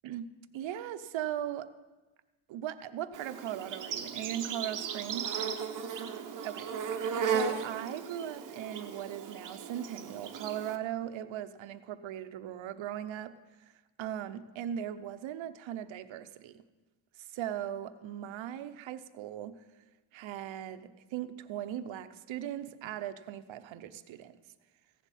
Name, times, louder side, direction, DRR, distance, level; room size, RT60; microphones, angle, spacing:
voice 1, 0.0-1.7 2.5-5.3 6.4-6.7 7.2-13.4 14.0-16.6 17.2-19.6 20.1-24.4, right 11 dB, 70° right, 11 dB, 0.8 m, -39 dB
Insect, 3.1-10.8, right 6 dB, 40° right, 0.8 m, -36 dB
15.5 x 10.5 x 4.2 m, 1.2 s
cardioid pair, 175°, 49 cm